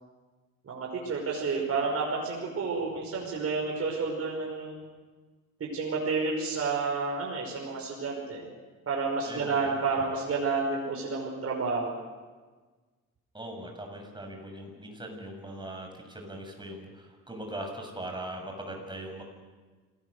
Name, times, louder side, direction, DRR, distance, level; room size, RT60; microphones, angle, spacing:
voice 1, 0.6-4.8 5.7-8.4 8.9-11.9, right 4 dB, 50° right, -2 dB, 5.5 m, -30 dB
voice 2, 9.2-10.1 13.3-19.2, right 1 dB, 15° right, 3 dB, 6.9 m, -40 dB
27.0 x 18.5 x 6.8 m, 1.3 s
cardioid pair, 90°, 30 cm